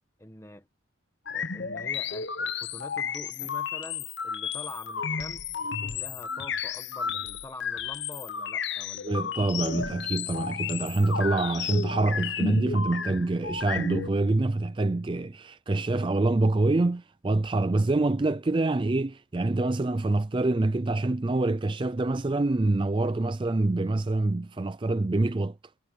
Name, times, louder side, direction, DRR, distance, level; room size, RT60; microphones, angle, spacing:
voice 1, 0.2-0.7 1.3-5.4 5.8-9.3, left 1 dB, 15° left, 1.6 m, -45 dB
sound 1, 1.3-14.1, left 6 dB, 60° left, 0.9 m, -33 dB
voice 2, 9.0-25.6, right 2 dB, 25° right, 0.4 m, -26 dB
head